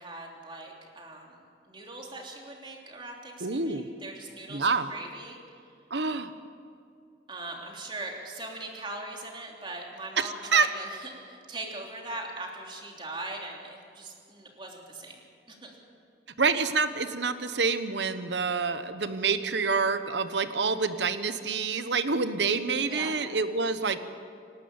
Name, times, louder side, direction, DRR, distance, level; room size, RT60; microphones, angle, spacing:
voice 1, 0.0-1.4 1.7-5.4 7.3-15.2 15.5-15.7 22.9-23.2, right 2 dB, 25° right, 0 dB, 3.1 m, -40 dB
voice 2, 3.4-3.9 4.5-4.9 5.9-6.3 10.2-10.7 16.4-24.0, right 4 dB, 75° right, 11 dB, 1.1 m, -27 dB
26.5 x 12.0 x 8.9 m, 2.4 s
head